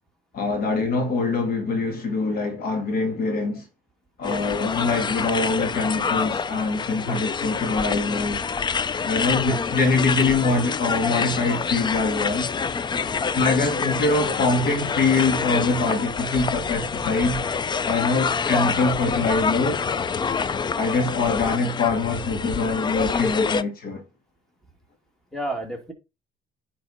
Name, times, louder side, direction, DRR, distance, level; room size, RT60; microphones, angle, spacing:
voice 1, 0.3-3.6 4.2-8.4 9.0-12.5 13.3-17.4 17.9-19.8 20.8-24.0, left 3 dB, 60° left, 2.4 m, -24 dB
sound 1, 4.2-23.6, left 5 dB, 25° left, 0.5 m, -27 dB
voice 2, 25.3-25.9, right 1 dB, 5° left, 2.6 m, -33 dB
9.9 x 4.4 x 4.3 m
cardioid pair, 110°, 17 cm